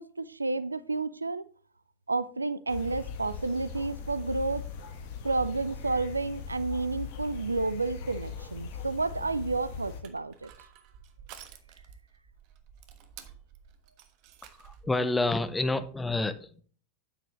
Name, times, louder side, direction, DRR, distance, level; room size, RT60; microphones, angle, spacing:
voice 1, 0.0-1.5 2.1-4.7 5.2-10.5, right 3 dB, 80° right, 0.5 m, -31 dB
sound 1, 2.7-10.0, left 5 dB, 50° left, 1.4 m, -40 dB
Crushing, 10.0-15.0, right 9 dB, 45° right, 1.2 m, -52 dB
voice 2, 14.6-16.6, left 2 dB, 10° left, 0.8 m, -29 dB
9.0 x 8.8 x 3.1 m
figure-of-eight pair, 90°, 0 cm